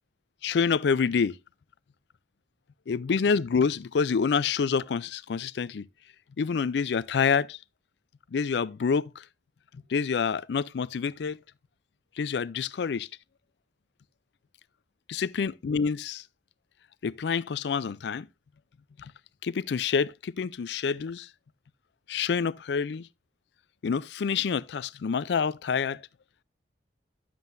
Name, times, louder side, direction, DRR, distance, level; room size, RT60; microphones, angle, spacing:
voice 1, 0.4-1.4 2.9-5.9 6.4-7.6 8.3-9.2 9.9-11.4 12.2-13.1 15.1-16.2 17.0-18.3 19.0-19.1 19.4-21.3 22.1-23.1 23.8-26.0, left 6 dB, 65° left, 0.4 m, -27 dB
11.0 x 7.5 x 2.5 m
head